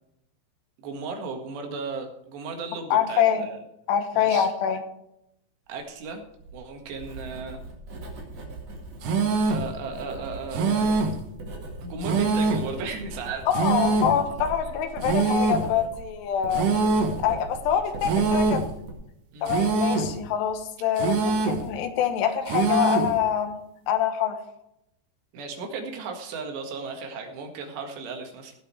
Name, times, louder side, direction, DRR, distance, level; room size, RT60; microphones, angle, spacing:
voice 1, 0.8-3.6 4.1-4.5 5.7-6.2 6.5-7.6 9.5-10.9 11.8-13.4 17.7-17.8 19.3-19.7 25.3-28.5, right 4 dB, 85° right, 3 dB, 4.0 m, -35 dB
voice 2, 2.9-3.5 3.9-4.8 13.5-16.7 17.2-18.7 19.4-23.6 23.9-24.4, left 8 dB, 85° left, 7 dB, 3.3 m, -25 dB
Writing, 6.2-18.9, right 2 dB, 45° right, 2.7 m, -40 dB
sound 1, 9.0-9.7 10.5-11.2 12.0-12.7 13.5-14.2 15.0-15.7 16.5-17.2 18.0-18.7 19.5-20.2 21.0-21.7 22.5-23.2, right 4 dB, 60° right, 2.6 m, -24 dB
16.5 x 7.9 x 4.6 m, 0.81 s
omnidirectional pair, 4.8 m